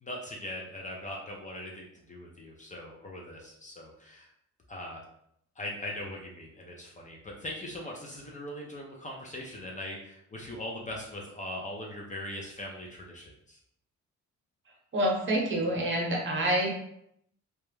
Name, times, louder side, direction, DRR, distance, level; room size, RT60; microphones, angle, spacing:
voice 1, 0.0-4.3 4.7-5.0 5.6-13.6, left 1 dB, 25° left, -1 dB, 0.4 m, -40 dB
voice 2, 14.9-16.7, right 1 dB, 40° right, -1 dB, 0.9 m, -27 dB
2.3 x 2.0 x 3.0 m, 0.74 s
cardioid pair, 90°, 30 cm